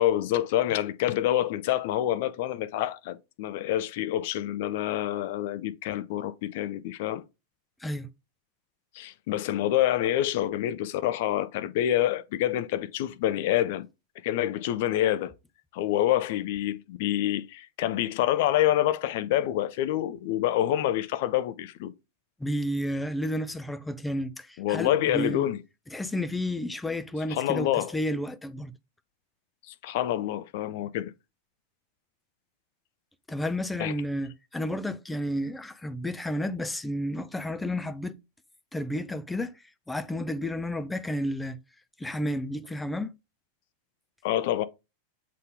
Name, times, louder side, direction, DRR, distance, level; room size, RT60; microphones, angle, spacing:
voice 1, 0.0-7.2 8.9-13.9 14.2-15.3 15.7-21.9 24.6-25.6 27.3-27.9 29.7-31.1 33.8-33.9 44.2-44.6, left 12 dB, 50° left, 0.6 m, -27 dB
voice 2, 22.4-25.5 25.9-28.7 33.3-38.2 38.7-41.6 42.0-43.1, left 1 dB, 5° left, 0.6 m, -31 dB
7.5 x 4.0 x 3.5 m
figure-of-eight pair, 90°, 0 cm